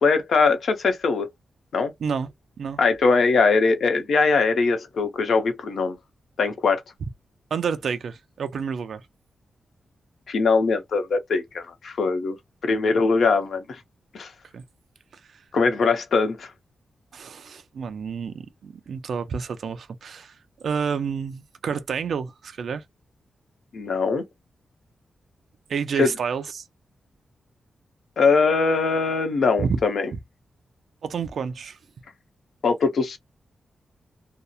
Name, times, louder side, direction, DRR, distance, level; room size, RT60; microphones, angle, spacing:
voice 1, 0.0-1.3 1.7-1.9 2.8-6.0 6.4-6.8 10.3-12.4 12.6-13.8 14.1-14.3 15.5-16.5 23.7-24.2 26.0-26.1 28.2-30.1 32.6-33.2, left 4 dB, 60° left, 0.7 m, -21 dB
voice 2, 7.5-9.0 14.5-14.6 15.1-15.4 17.1-20.3 20.6-22.8 25.7-26.6 29.6-29.8 31.0-31.8, right 6 dB, 65° right, 0.3 m, -29 dB
2.7 x 2.0 x 2.3 m
wide cardioid pair, 170°, 0 cm